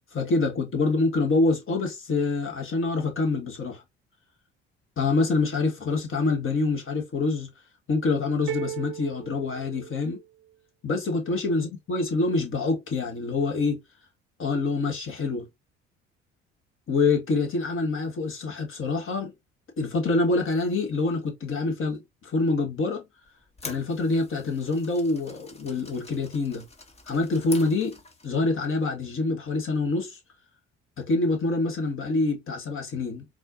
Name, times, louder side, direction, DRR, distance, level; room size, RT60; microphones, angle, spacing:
voice 1, 0.1-3.8 5.0-7.5 7.9-10.2 10.8-13.8 14.4-15.5 16.9-19.3 19.8-23.0 23.6-26.6 27.1-28.0 28.2-30.2 31.0-33.3, left 3 dB, 35° left, 1.3 m, -26 dB
sound 1, 8.5-10.5, right 11 dB, 40° right, 0.9 m, -36 dB
sound 2, 23.3-28.4, left 3 dB, 15° left, 1.0 m, -45 dB
4.1 x 2.5 x 2.8 m
figure-of-eight pair, 50°, 36 cm